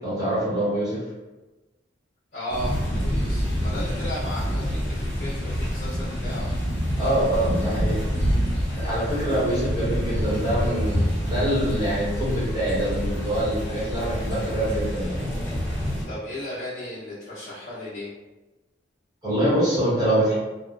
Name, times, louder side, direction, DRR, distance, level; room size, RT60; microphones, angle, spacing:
voice 1, 0.0-1.0 7.0-8.0 8.7-15.2 19.2-20.3, right 1 dB, 20° right, -10 dB, 0.9 m, -25 dB
voice 2, 2.3-6.5 8.2-8.6 9.0-9.2 16.1-18.1, left 1 dB, 50° left, -11 dB, 0.8 m, -35 dB
sound 1, 2.5-16.0, equal, 15° left, 1.0 m, -27 dB
3.0 x 2.0 x 2.4 m, 1.1 s
head